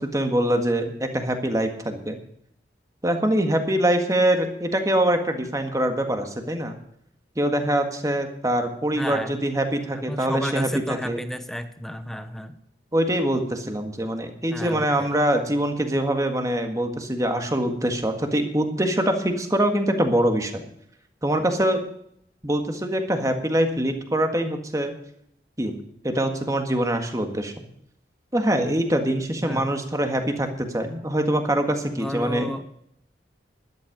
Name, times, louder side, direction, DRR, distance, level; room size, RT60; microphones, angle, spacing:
voice 1, 0.1-2.2 3.0-6.8 7.3-11.2 12.9-20.6 21.2-21.8 22.4-24.9 25.6-25.8 26.0-27.5 28.3-32.5, right 1 dB, 20° right, 5 dB, 1.7 m, -24 dB
voice 2, 8.9-9.4 9.9-12.6 14.5-15.2 29.4-29.7 31.9-32.7, equal, ahead, 10 dB, 0.9 m, -32 dB
12.5 x 12.0 x 5.2 m, 0.70 s
head